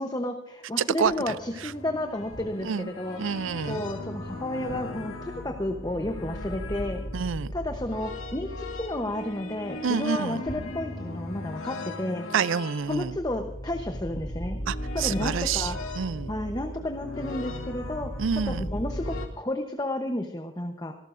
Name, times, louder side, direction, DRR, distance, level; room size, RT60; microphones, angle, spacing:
voice 1, 0.0-3.2 3.7-12.3 12.9-14.6 14.9-15.8 16.3-20.9, left 1 dB, 20° left, 5 dB, 0.9 m, -32 dB
sound 1, 1.0-19.3, left 1 dB, 90° left, 2.4 m, -37 dB
sound 2, 1.0-1.4 2.1-3.0 3.4-3.7 4.0-5.3 6.7-7.5 7.8-9.4 10.4-11.0, left 1 dB, 35° left, 2.5 m, -46 dB
voice 2, 1.0-1.3 2.6-2.9 3.2-3.8 7.1-7.5 9.8-10.4 12.3-13.2 14.7-16.3 18.2-18.6, right 6 dB, 75° right, 18 dB, 0.4 m, -28 dB
26.5 x 13.0 x 2.6 m, 0.91 s
head